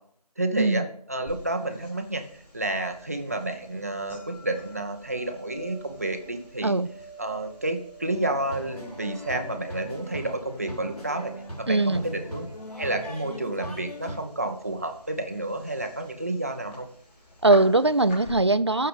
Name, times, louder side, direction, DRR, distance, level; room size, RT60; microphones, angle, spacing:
voice 1, 0.4-0.8 1.1-2.2 2.5-6.7 7.2-11.3 11.6-12.5 12.8-16.9, right 2 dB, 25° right, 6 dB, 0.8 m, -30 dB
sound 1, 1.3-18.3, equal, 15° left, 5.7 m, -48 dB
sound 2, 8.1-14.2, equal, 65° left, 3.7 m, -40 dB
voice 2, 11.7-12.0 17.4-18.9, right 2 dB, 40° right, 16 dB, 0.5 m, -21 dB
14.0 x 6.7 x 5.3 m, 0.63 s
figure-of-eight pair, 170°, 21 cm